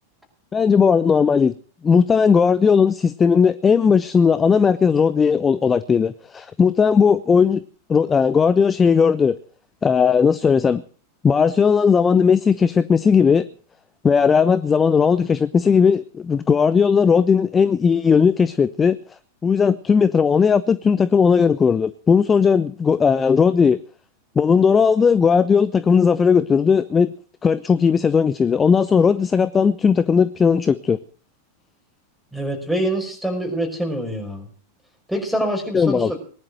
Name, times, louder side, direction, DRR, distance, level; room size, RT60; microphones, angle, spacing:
voice 1, 0.5-1.5 1.8-7.6 7.9-9.4 9.8-10.8 11.2-13.5 14.0-19.0 19.4-23.8 24.4-27.1 27.4-31.0 35.7-36.1, left 6 dB, 20° left, 15 dB, 0.7 m, -17 dB
voice 2, 32.3-34.5 35.1-36.2, right 1 dB, ahead, 2 dB, 5.8 m, -25 dB
19.5 x 11.0 x 6.5 m, 0.43 s
figure-of-eight pair, 90°, 0 cm